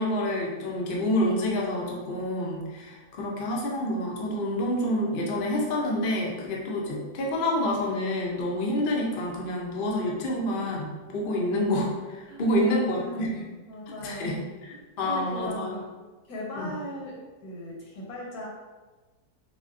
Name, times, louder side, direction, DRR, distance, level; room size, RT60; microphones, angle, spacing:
voice 1, 0.0-13.3 13.9-14.4 14.6-15.8 16.6-16.7, left 1 dB, 55° left, -2 dB, 0.6 m, -28 dB
voice 2, 12.3-15.8 16.3-18.5, equal, 75° left, -3 dB, 1.4 m, -39 dB
5.9 x 2.2 x 2.5 m, 1.3 s
omnidirectional pair, 1.6 m